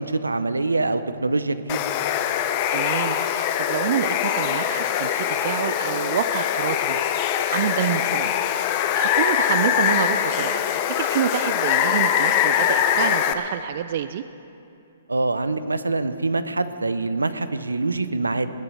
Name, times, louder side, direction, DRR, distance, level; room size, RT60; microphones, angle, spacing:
voice 1, 0.0-1.8 15.1-18.5, right 3 dB, 90° right, 12 dB, 0.8 m, -24 dB
Water, 1.7-13.3, left 10 dB, 40° left, 0.8 m, -23 dB
voice 2, 2.7-7.1 7.5-8.3 8.9-14.2, right 10 dB, 50° right, 12 dB, 0.4 m, -28 dB
20.0 x 8.7 x 6.3 m, 2.7 s
hypercardioid pair, 125°, 0 cm